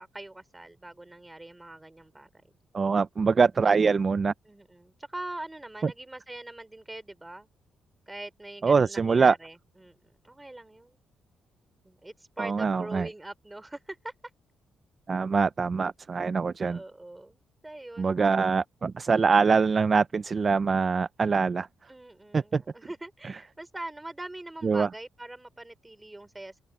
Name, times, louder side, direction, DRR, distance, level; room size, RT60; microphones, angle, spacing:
voice 1, 0.0-2.3 4.4-7.5 8.1-10.0 10.2-11.0 11.8-14.1 16.6-17.4 17.6-18.1 21.9-26.6, right 2 dB, 10° right, 3.2 m, -42 dB
voice 2, 2.7-4.3 5.8-5.9 8.6-9.3 12.4-13.1 15.1-16.8 18.0-21.7 22.3-22.6 24.6-24.9, right 5 dB, 35° right, 0.4 m, -24 dB
cardioid pair, 125°, 0 cm